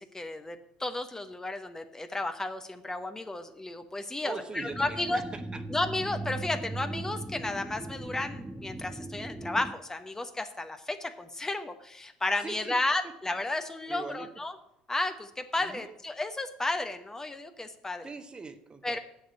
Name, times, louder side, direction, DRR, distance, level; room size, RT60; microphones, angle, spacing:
voice 1, 0.0-5.2 5.7-14.5 14.9-18.1 18.8-19.0, left 2 dB, 15° left, 8 dB, 1.0 m, -33 dB
voice 2, 4.2-5.6 12.4-12.8 13.9-14.3 15.6-16.0 18.0-19.0, right 4 dB, 25° right, 9 dB, 1.1 m, -41 dB
sound 1, 4.7-9.7, right 2 dB, 5° right, 0.7 m, -39 dB
7.9 x 6.6 x 8.1 m, 0.82 s
figure-of-eight pair, 65°, 4 cm